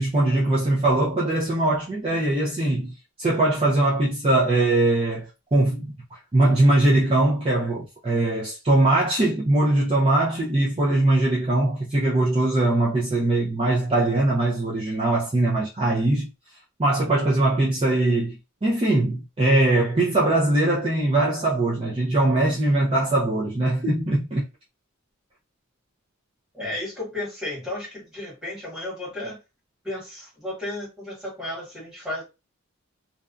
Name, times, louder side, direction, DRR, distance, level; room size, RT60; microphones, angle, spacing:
voice 1, 0.0-16.3 16.8-24.5, right 2 dB, 25° right, 0.5 m, -21 dB
voice 2, 26.5-29.4 29.8-32.2, left 1 dB, 5° right, 1.3 m, -33 dB
2.6 x 2.2 x 2.4 m
head